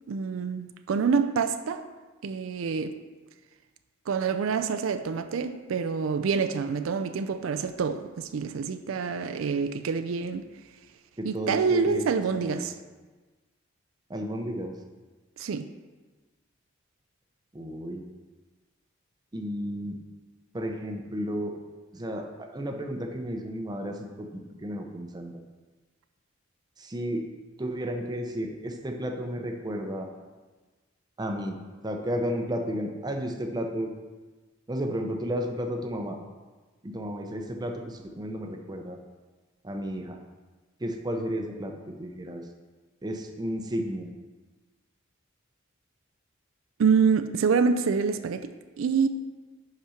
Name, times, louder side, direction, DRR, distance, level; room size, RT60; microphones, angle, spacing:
voice 1, 0.1-1.8 2.2-3.0 4.1-10.4 11.2-12.7 15.4-15.7 46.8-49.1, right 5 dB, 85° right, 0.4 m, -26 dB
voice 2, 11.2-12.0 12.3-12.7 14.1-14.7 17.5-18.0 19.3-20.0 20.5-21.5 21.9-25.4 26.8-27.3 27.6-30.1 31.2-31.6 31.8-33.9 34.7-36.2 36.8-39.0 39.6-40.2 40.8-42.4 43.0-44.1, equal, 20° right, 0.6 m, -33 dB
5.5 x 5.1 x 5.7 m
head